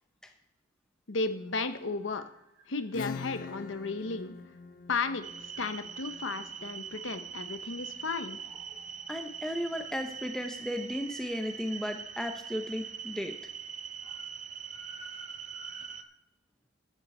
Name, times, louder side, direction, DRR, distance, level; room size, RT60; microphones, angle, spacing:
voice 1, 1.1-2.3 2.7-4.3 4.9-8.4, left 4 dB, 75° left, 9 dB, 0.9 m, -34 dB
sound 1, 1.5-16.0, equal, 70° right, 2.6 m, -57 dB
Acoustic guitar / Strum, 2.9-8.3, left 5 dB, 40° left, 0.3 m, -44 dB
sound 2, 5.2-16.0, right 7 dB, 35° right, 0.5 m, -42 dB
voice 2, 9.1-13.4, equal, 5° left, 5 dB, 0.7 m, -35 dB
12.0 x 7.5 x 4.3 m, 0.85 s
head